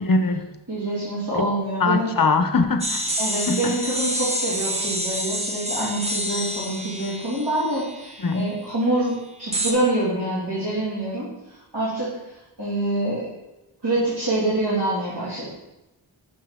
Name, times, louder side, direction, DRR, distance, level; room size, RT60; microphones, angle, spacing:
voice 1, 0.0-0.5 1.8-3.1 3.5-3.7 8.2-8.5, left 3 dB, 45° left, 7 dB, 0.7 m, -21 dB
voice 2, 0.7-2.1 3.2-9.1 9.4-11.3 11.7-12.1 12.6-13.2 13.8-15.4, right 1 dB, 60° right, -10 dB, 2.5 m, -25 dB
sound 1, 2.8-8.5 9.5-9.7, equal, 15° right, 1.0 m, -28 dB
6.8 x 5.6 x 3.6 m, 0.98 s
wide cardioid pair, 55°, 47 cm